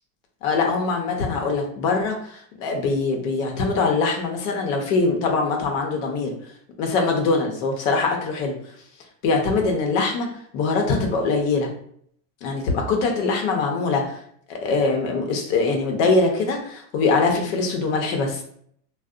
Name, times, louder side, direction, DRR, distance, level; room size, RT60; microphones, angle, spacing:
voice 1, 0.4-6.3 6.8-8.5 9.2-10.3 10.5-11.7 12.4-14.2 14.5-18.4, left 3 dB, 55° left, 2 dB, 0.7 m, -22 dB
2.6 x 2.0 x 2.4 m, 0.65 s
supercardioid pair, 120°, 48 cm